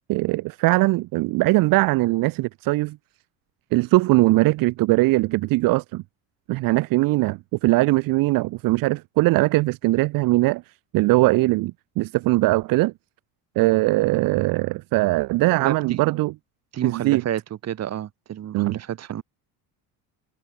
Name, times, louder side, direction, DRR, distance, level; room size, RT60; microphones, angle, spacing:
voice 1, 0.1-3.0 3.7-6.0 6.5-10.6 10.9-12.9 13.6-16.3 16.8-17.2 18.5-18.8, right 20 dB, 65° right, 0.8 m, -20 dB
voice 2, 15.6-16.0 16.7-19.2, right 10 dB, 45° right, 3.2 m, -30 dB
cardioid pair, 130°, 37 cm